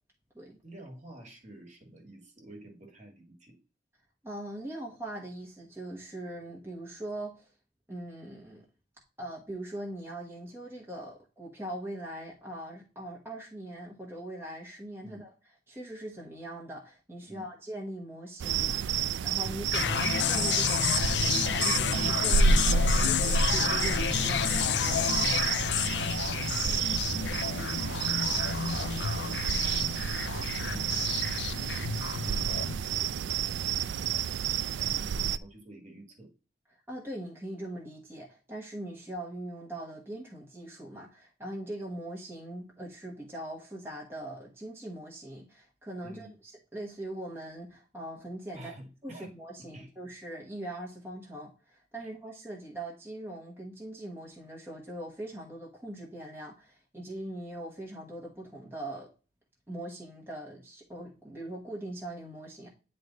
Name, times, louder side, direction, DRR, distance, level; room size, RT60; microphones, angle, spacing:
voice 1, 0.6-3.6 15.0-15.2 17.3-17.5 19.3-19.5 26.3-29.1 29.5-31.0 32.2-36.3 46.0-46.3 48.5-49.3 49.6-49.9 52.0-52.1, right 1 dB, 40° right, 1 dB, 1.7 m, -49 dB
voice 2, 4.2-7.5 7.9-8.6 9.2-15.3 15.7-25.2 36.9-48.7 49.0-59.1 59.7-62.7, right 1 dB, 15° right, -3 dB, 1.2 m, -41 dB
sound 1, 18.4-35.4, right 6 dB, 75° right, 0.3 m, -30 dB
sound 2, 19.7-32.8, left 8 dB, 70° left, 0.4 m, -30 dB
9.6 x 3.3 x 3.9 m, 0.34 s
head